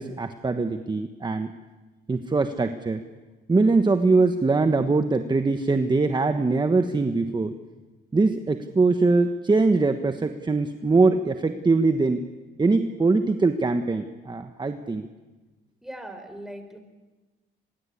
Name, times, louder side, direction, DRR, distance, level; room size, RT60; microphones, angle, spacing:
voice 1, 0.0-1.5 2.1-3.0 3.5-7.6 8.1-12.2 12.6-15.1, right 3 dB, 20° right, 8 dB, 1.3 m, -22 dB
voice 2, 15.8-16.9, right 1 dB, ahead, 8 dB, 4.3 m, -39 dB
24.5 x 21.5 x 8.5 m, 1.2 s
cardioid pair, 90°, 20 cm